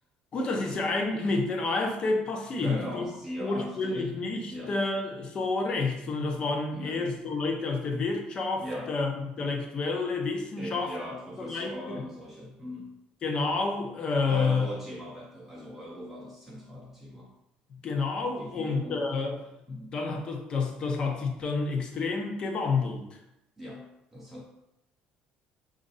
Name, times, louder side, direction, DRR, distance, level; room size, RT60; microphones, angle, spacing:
voice 1, 0.3-3.0 3.4-11.0 11.4-12.0 13.2-14.7 17.8-19.4 19.7-23.2, left 3 dB, 35° left, 3 dB, 0.7 m, -29 dB
voice 2, 2.6-4.1 4.5-4.8 6.7-7.1 8.6-8.9 10.6-12.9 14.3-17.3 18.4-19.0 19.7-20.0 23.6-24.4, equal, 5° right, -3 dB, 0.5 m, -39 dB
5.1 x 2.5 x 4.0 m, 0.86 s
cardioid pair, 160°, 3 cm